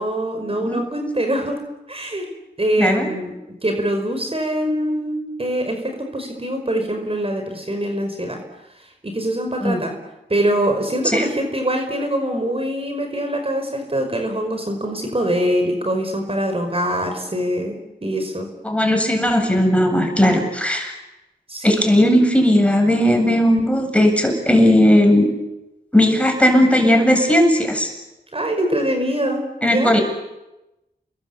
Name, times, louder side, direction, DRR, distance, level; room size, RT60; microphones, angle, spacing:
voice 1, 0.0-1.6 1.9-2.3 2.6-3.3 3.6-8.4 8.8-10.0 10.3-18.5 21.5-21.9 28.3-29.9, right 1 dB, 35° right, 4 dB, 5.1 m, -23 dB
voice 2, 2.8-3.1 9.6-9.8 11.1-11.3 18.6-20.9 21.6-25.3 25.9-27.9 29.6-30.0, left 1 dB, 5° left, 4 dB, 7.7 m, -16 dB
29.0 x 22.0 x 8.5 m, 0.97 s
wide cardioid pair, 55°, 18 cm